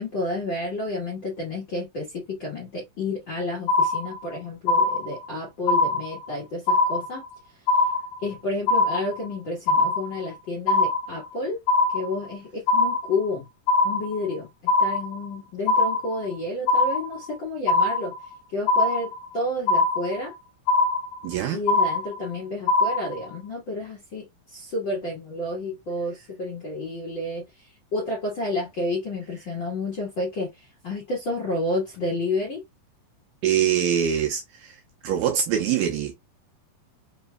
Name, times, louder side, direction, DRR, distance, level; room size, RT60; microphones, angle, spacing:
voice 1, 0.0-7.2 8.2-11.6 11.9-13.4 13.8-18.1 18.5-20.3 21.5-27.4 27.9-30.5 30.8-32.6, left 2 dB, 55° left, 1.3 m, -30 dB
sound 1, 3.7-4.3 4.7-5.3 5.7-6.3 6.7-7.3 7.7-8.3 8.7-9.3 9.7-10.3 10.7-11.3 11.7-12.3 12.7-13.3 13.7-14.3 14.7-15.3 15.7-16.3 16.7-17.3 17.7-18.3 18.7-19.3 19.7-20.3 20.7-21.3 21.7-22.3 22.7-23.3, left 3 dB, 80° left, 2.2 m, -22 dB
voice 2, 21.2-21.6 33.4-34.8 35.0-36.1, right 9 dB, 75° right, 2.0 m, -24 dB
5.2 x 3.1 x 2.2 m
omnidirectional pair, 4.2 m